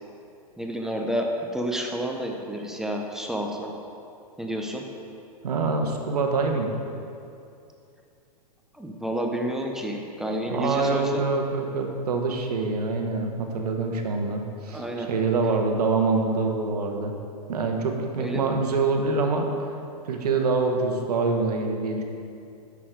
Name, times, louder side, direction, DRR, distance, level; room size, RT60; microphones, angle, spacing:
voice 1, 0.6-3.7 4.4-4.8 8.7-11.2 14.7-15.1 18.2-18.5, right 1 dB, ahead, 1 dB, 0.7 m, -30 dB
voice 2, 5.4-6.7 10.5-17.1 17.5-19.5 20.0-22.0, right 3 dB, 75° right, 3 dB, 1.1 m, -25 dB
7.6 x 6.2 x 4.7 m, 2.6 s
hypercardioid pair, 120°, 20 cm